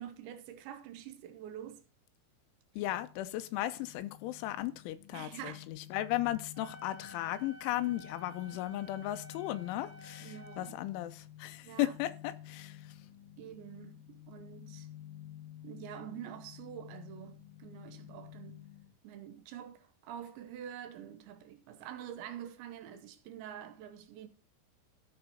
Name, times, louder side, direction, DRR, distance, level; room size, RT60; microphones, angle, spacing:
voice 1, 0.0-1.8 5.1-5.7 6.6-6.8 10.2-10.8 11.6-12.0 13.4-14.9 15.6-18.6 19.0-24.3, right 10 dB, 75° right, 3.1 m, -46 dB
voice 2, 2.8-12.8, left 15 dB, 85° left, 3.1 m, -36 dB
sound 1, 2.9-18.9, left 12 dB, 70° left, 2.6 m, -52 dB
Wind instrument woodwind instrument, 6.5-10.8, equal, 60° right, 2.1 m, -53 dB
13.0 x 4.9 x 5.5 m
omnidirectional pair, 5.5 m